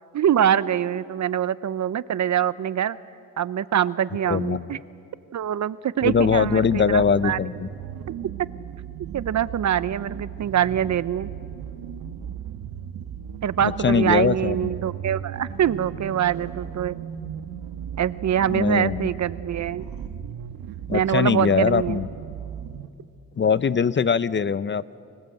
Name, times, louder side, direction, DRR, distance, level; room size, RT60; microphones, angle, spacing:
voice 1, 0.1-3.0 3.4-4.8 5.3-7.4 9.1-11.3 13.4-17.0 18.0-19.9 20.9-22.0, right 9 dB, 55° right, 16 dB, 0.8 m, -24 dB
voice 2, 4.3-4.7 6.0-7.7 13.8-14.7 18.5-19.1 20.9-22.1 23.4-24.9, left 6 dB, 35° left, 16 dB, 0.6 m, -22 dB
sound 1, 6.0-22.9, right 8 dB, 85° right, 1.3 m, -36 dB
30.0 x 22.0 x 7.9 m, 2.4 s
cardioid pair, 80°, 35 cm